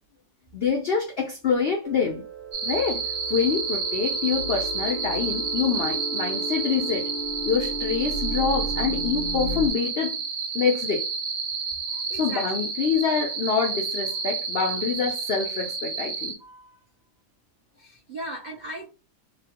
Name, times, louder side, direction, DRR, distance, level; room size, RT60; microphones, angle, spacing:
voice 1, 0.5-2.2 2.6-3.0 3.3-7.1 7.4-10.1 10.5-11.0 12.1-16.3, left 6 dB, 85° left, 0.5 m, -26 dB
sound 1, 1.8-9.7, right 2 dB, 70° right, 1.1 m, -34 dB
sound 2, 2.5-16.3, right 5 dB, 50° right, 0.8 m, -30 dB
voice 2, 12.1-12.7 16.4-16.8 17.8-18.9, right 1 dB, 90° right, 0.4 m, -38 dB
3.1 x 2.2 x 2.8 m
omnidirectional pair, 1.7 m